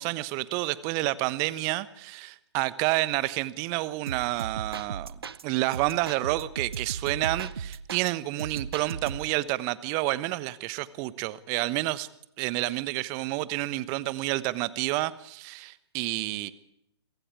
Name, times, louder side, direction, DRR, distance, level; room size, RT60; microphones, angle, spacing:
voice 1, 0.0-5.1 5.4-12.1 12.4-16.5, right 18 dB, 25° right, 17 dB, 1.2 m, -29 dB
sound 1, 4.1-5.4 5.7-8.1 8.4-9.4, right 6 dB, 65° right, 0.9 m, -37 dB
26.5 x 24.0 x 4.9 m, 0.79 s
figure-of-eight pair, 125°, 14 cm